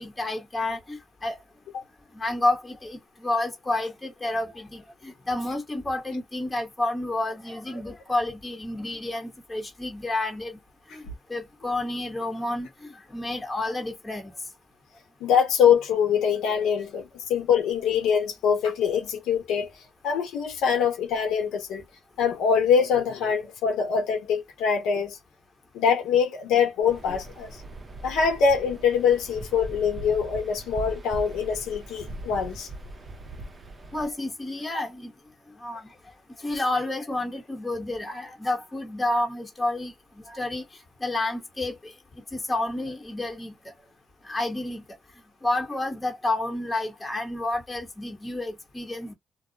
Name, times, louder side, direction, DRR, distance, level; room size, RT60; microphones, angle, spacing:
voice 1, 0.0-1.4 2.1-10.6 10.9-14.3 33.9-35.1 35.6-35.9 36.4-39.9 40.3-40.6 41.0-41.9 42.3-43.5 44.2-44.8 45.4-49.1, left 2 dB, 20° left, 1.1 m, -30 dB
voice 2, 15.2-19.7 20.0-21.8 22.2-25.2 25.7-27.6 28.0-32.7, left 7 dB, 85° left, 0.8 m, -24 dB
Waves surf, 26.8-34.1, right 2 dB, 30° right, 0.6 m, -40 dB
2.3 x 2.1 x 2.7 m
cardioid pair, 90°, 0 cm